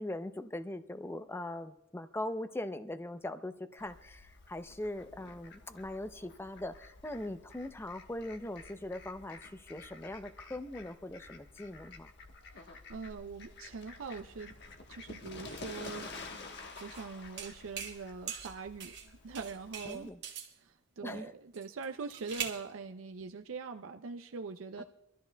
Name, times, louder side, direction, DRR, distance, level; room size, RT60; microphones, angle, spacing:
voice 1, 0.0-12.1 19.9-20.2 21.0-21.3 24.8-24.9, left 1 dB, 10° left, 10 dB, 0.5 m, -41 dB
Fowl, 3.8-20.1, left 3 dB, 60° left, 1.2 m, -50 dB
voice 2, 12.7-14.5 14.9-16.1 16.8-19.0 19.2-20.1 20.6-24.8, right 4 dB, 80° right, 6 dB, 0.5 m, -43 dB
sound 1, 16.7-17.0 17.4-18.0 18.3-19.1 19.3-20.5 21.5-22.6, right 7 dB, 60° right, 1.5 m, -41 dB
26.5 x 13.0 x 2.2 m, 0.86 s
head